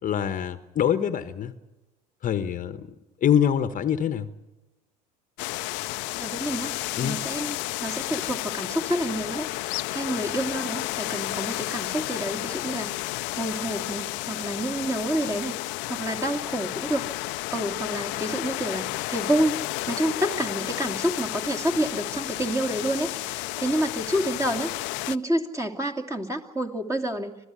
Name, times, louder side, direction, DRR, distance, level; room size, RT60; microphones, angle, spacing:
voice 1, 0.0-1.5 2.2-2.9 3.2-4.3 7.0-7.2, left 9 dB, 40° left, 12 dB, 1.2 m, -24 dB
sound 1, 5.4-25.2, left 22 dB, 60° left, 0.7 m, -32 dB
voice 2, 6.2-17.1 17.5-27.4, right 1 dB, 15° right, 5 dB, 2.7 m, -29 dB
26.5 x 16.0 x 8.4 m, 1.1 s
hypercardioid pair, 75°, 21 cm